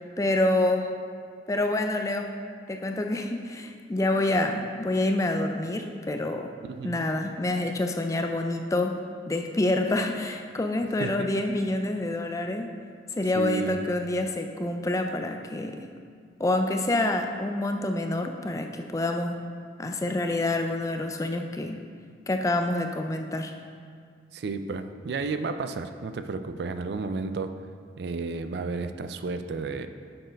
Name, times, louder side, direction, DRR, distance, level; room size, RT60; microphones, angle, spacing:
voice 1, 0.2-0.9 1.5-2.3 2.7-6.5 6.8-9.0 9.3-12.7 13.1-15.9 16.4-19.4 19.8-21.8 22.3-23.5, left 2 dB, 15° left, 5 dB, 0.3 m, -27 dB
voice 2, 6.6-7.1 11.0-11.3 13.3-13.8 24.3-27.5 28.0-29.9, right 4 dB, 65° right, 10 dB, 0.4 m, -32 dB
7.6 x 4.6 x 5.1 m, 2.1 s
head